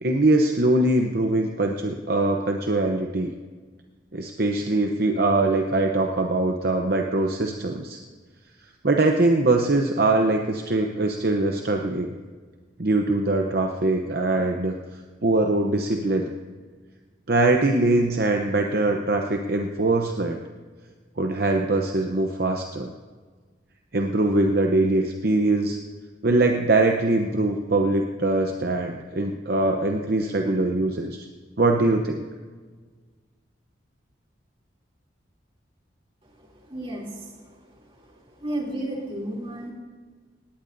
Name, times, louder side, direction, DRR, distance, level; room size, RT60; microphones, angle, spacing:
voice 1, 0.0-3.3 4.1-8.0 8.8-12.1 12.8-16.3 17.3-20.4 21.2-22.9 23.9-25.8 26.2-31.3 31.6-32.2, right 2 dB, 55° right, 3 dB, 0.8 m, -22 dB
voice 2, 36.4-37.5 38.0-39.7, right 1 dB, 30° right, -2 dB, 3.0 m, -33 dB
19.0 x 18.0 x 2.7 m, 1.5 s
head